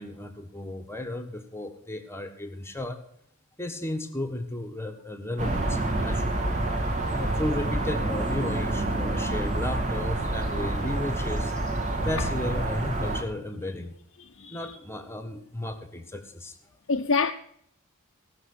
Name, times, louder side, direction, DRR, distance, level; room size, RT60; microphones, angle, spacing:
voice 1, 0.0-3.0 3.6-6.5 7.1-11.5 12.0-14.0 14.5-16.6, left 1 dB, 10° left, 1.4 m, -34 dB
sound 1, 5.4-13.2, right 2 dB, 35° right, 1.9 m, -28 dB
voice 2, 14.3-14.8 16.9-17.3, left 4 dB, 60° left, 0.7 m, -26 dB
17.5 x 6.6 x 6.6 m
head